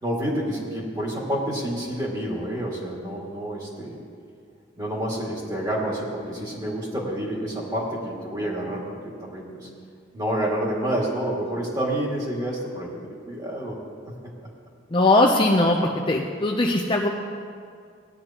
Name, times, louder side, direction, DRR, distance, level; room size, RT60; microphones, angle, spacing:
voice 1, 0.0-4.0 4.8-9.7 10.1-13.8, right 1 dB, 20° right, -4 dB, 2.2 m, -28 dB
voice 2, 14.9-15.8 16.1-17.1, left 2 dB, 25° left, 0 dB, 0.6 m, -19 dB
17.5 x 9.9 x 2.9 m, 2.1 s
head